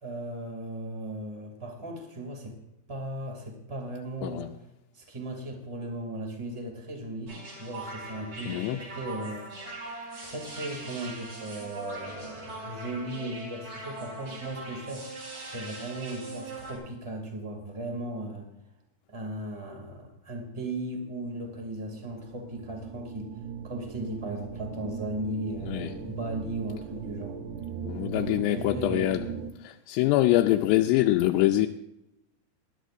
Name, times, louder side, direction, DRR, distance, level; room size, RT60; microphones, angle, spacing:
voice 1, 0.0-2.6 2.9-4.5 4.9-9.8 10.2-18.5 19.1-27.4 28.1-29.2, right 1 dB, 10° right, 1.4 m, -37 dB
sound 1, 7.3-16.8, right 2 dB, 35° right, 5.4 m, -41 dB
voice 2, 8.5-8.8 25.7-25.9 27.8-29.3 29.6-31.7, left 15 dB, 85° left, 2.6 m, -24 dB
sound 2, 21.1-29.5, right 7 dB, 75° right, 3.1 m, -39 dB
20.5 x 12.5 x 2.6 m
omnidirectional pair, 5.1 m